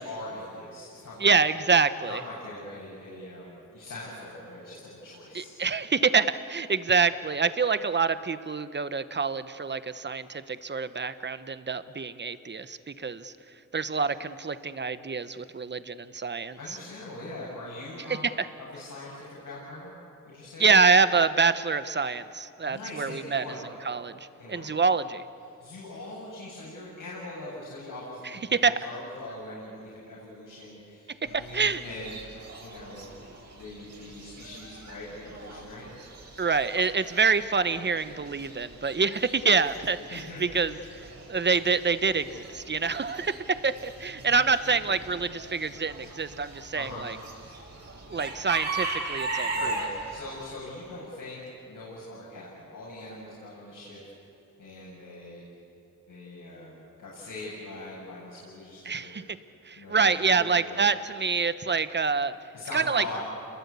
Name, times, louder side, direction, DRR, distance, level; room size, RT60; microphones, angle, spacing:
voice 1, 0.0-1.5 2.1-5.6 16.6-19.9 20.2-20.7 22.7-23.6 24.4-24.7 25.6-35.9 40.1-40.7 46.7-47.1 49.5-54.0 54.6-55.4 56.1-59.2 59.7-60.8 62.5-63.2, left 2 dB, 75° left, -7 dB, 7.5 m, -42 dB
voice 2, 1.2-2.2 5.3-13.3 13.7-16.8 18.4-18.5 20.6-23.4 23.8-24.2 24.5-25.2 28.5-28.8 31.5-31.8 36.4-40.8 41.3-47.2 48.1-49.7 58.8-59.2 59.6-62.4 62.7-63.2, right 5 dB, 35° right, 13 dB, 1.0 m, -26 dB
Chicken rooster / Bird, 31.3-50.4, right 3 dB, 55° right, 5.8 m, -39 dB
29.5 x 21.5 x 8.3 m, 2.7 s
cardioid pair, 85°, 32 cm